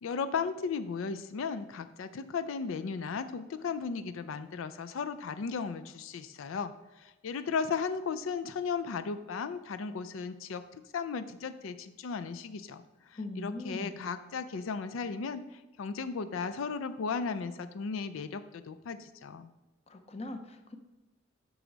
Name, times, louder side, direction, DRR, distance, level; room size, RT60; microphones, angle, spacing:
voice 1, 0.0-10.6 10.9-19.5, left 5 dB, 90° left, 11 dB, 0.4 m, -36 dB
voice 2, 13.2-14.0 19.9-20.8, left 2 dB, 30° left, 7 dB, 0.6 m, -40 dB
7.9 x 6.1 x 3.9 m, 1.1 s
head